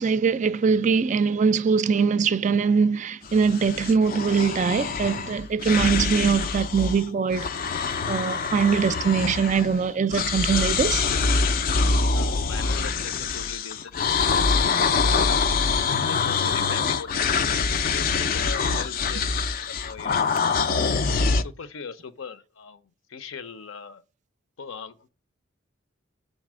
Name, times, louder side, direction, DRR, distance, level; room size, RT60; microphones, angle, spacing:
voice 1, 0.0-7.5 8.1-11.0, right 5 dB, 35° right, 0.3 m, -22 dB
sound 1, 3.2-7.0 7.3-9.8 10.1-21.4, left 5 dB, 45° left, 0.3 m, -25 dB
voice 2, 12.1-15.6 16.1-21.0 21.3-24.0 24.6-25.1, left 5 dB, 75° left, 0.6 m, -40 dB
6.4 x 4.1 x 6.1 m
head